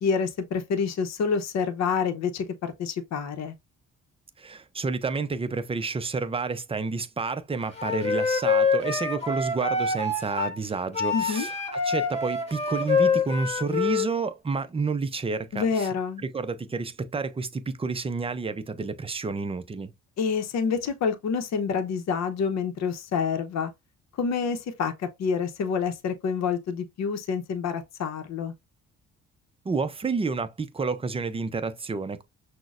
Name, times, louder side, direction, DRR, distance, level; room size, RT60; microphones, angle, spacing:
voice 1, 0.0-3.5 11.1-11.5 15.5-16.2 20.2-23.7 24.2-28.5, left 6 dB, 60° left, 0.8 m, -27 dB
voice 2, 4.4-11.6 11.8-15.9 16.2-19.9 29.6-32.2, right 4 dB, 20° right, 0.4 m, -30 dB
Wind instrument woodwind instrument, 7.8-10.6 10.9-14.1, left 4 dB, 20° left, 1.7 m, -26 dB
6.0 x 2.1 x 2.4 m
cardioid pair, 90°, 30 cm